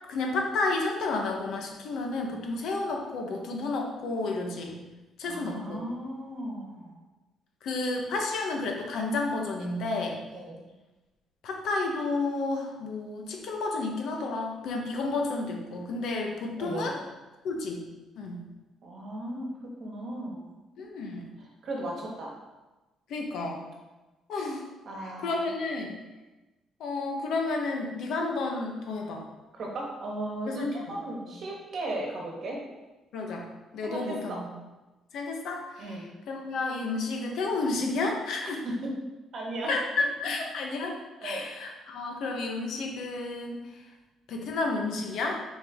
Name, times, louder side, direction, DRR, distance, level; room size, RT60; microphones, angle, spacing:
voice 1, 0.1-4.8 5.2-5.8 7.6-10.2 11.4-17.0 17.4-17.8 18.2-18.4 20.8-21.2 23.1-23.7 24.3-24.6 25.0-26.0 26.8-29.2 30.5-31.0 33.1-33.4 33.7-34.5 35.1-38.6 39.7-43.8 44.3-45.4, left 3 dB, 60° left, 1 dB, 1.0 m, -31 dB
voice 2, 5.2-6.9 10.3-10.6 16.6-16.8 18.8-19.5 19.8-20.5 21.4-22.3 24.9-25.4 29.5-32.6 33.8-34.4 35.8-36.1 38.6-38.9 39.3-39.7 41.2-41.4, right 1 dB, 40° right, -1 dB, 1.3 m, -36 dB
6.1 x 4.6 x 3.7 m, 1.1 s
cardioid pair, 175°, 0 cm